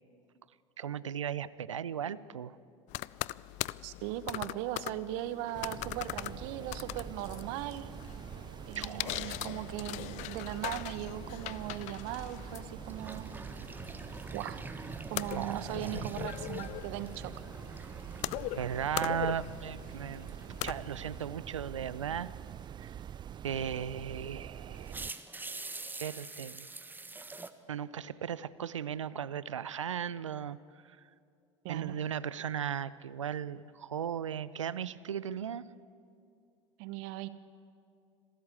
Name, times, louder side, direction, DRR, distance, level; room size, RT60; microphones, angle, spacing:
voice 1, 0.8-2.6 8.8-9.4 15.4-16.1 18.5-20.4 20.6-22.3 22.8-22.9 23.4-24.9 26.0-26.7 27.7-30.6 30.9-31.0 31.7-35.6, right 8 dB, 85° right, 18 dB, 0.6 m, -36 dB
sound 1, 2.9-21.3, left 19 dB, 50° left, 0.4 m, -41 dB
voice 2, 3.8-7.9 8.7-13.3 14.3-14.6 15.1-17.3 31.6-32.0 36.8-37.3, right 13 dB, 60° right, 14 dB, 1.0 m, -39 dB
sound 2, 5.5-25.1, right 9 dB, 30° right, 0.5 m, -45 dB
sound 3, 12.9-19.8 20.1-20.5 23.9-24.0 24.7-27.5, right 3 dB, 10° right, 1.2 m, -45 dB
26.5 x 13.5 x 8.5 m, 2.5 s
hypercardioid pair, 75°, 15 cm